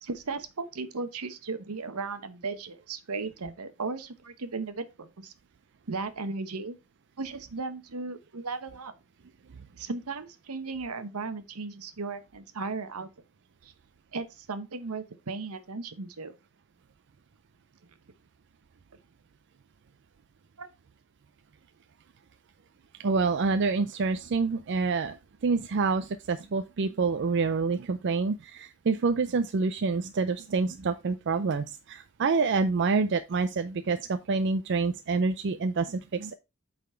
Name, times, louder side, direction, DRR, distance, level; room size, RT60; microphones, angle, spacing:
voice 1, 0.0-5.3 5.9-6.8 7.2-8.9 9.8-13.1 13.6-13.7 14.1-16.3 20.6-20.7, right 4 dB, 80° right, 1.0 m, -36 dB
voice 2, 23.0-25.2 25.4-36.3, right 4 dB, 55° right, 0.4 m, -27 dB
8.3 x 4.0 x 4.4 m
head